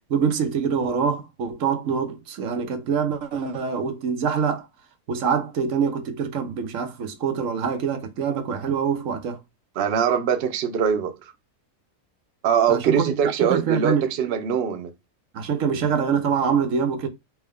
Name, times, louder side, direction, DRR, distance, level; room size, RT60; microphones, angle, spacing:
voice 1, 0.1-4.7 5.1-9.4 12.7-14.1 15.3-17.1, right 6 dB, 60° right, 1.0 m, -25 dB
voice 2, 9.8-11.1 12.4-14.9, right 7 dB, 80° right, 0.5 m, -22 dB
4.4 x 2.1 x 3.4 m
omnidirectional pair, 1.7 m